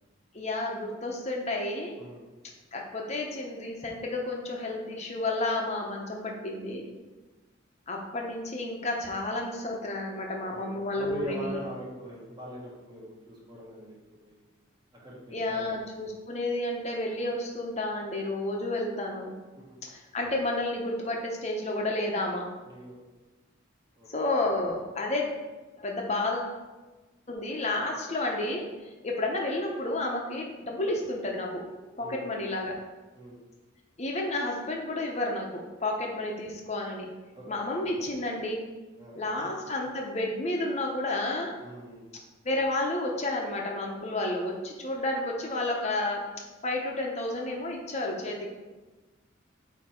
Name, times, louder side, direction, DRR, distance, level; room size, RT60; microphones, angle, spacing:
voice 1, 0.3-1.9 2.7-6.9 7.9-11.6 15.3-19.3 19.9-22.5 24.1-25.3 25.8-26.5 27.3-28.6 29.0-31.6 32.0-32.8 34.0-37.1 37.5-38.6 39.1-41.5 42.4-46.2 46.6-48.5, left 2 dB, 35° left, 0 dB, 0.9 m, -31 dB
voice 2, 10.5-14.0 14.2-14.3 15.0-15.7 19.5-19.8 22.6-23.0 24.0-24.1 32.0-32.3 33.1-33.4 37.3-37.4 39.0-39.5 41.6-42.1, left 1 dB, 20° right, -5 dB, 1.4 m, -42 dB
7.9 x 2.9 x 4.3 m, 1.2 s
head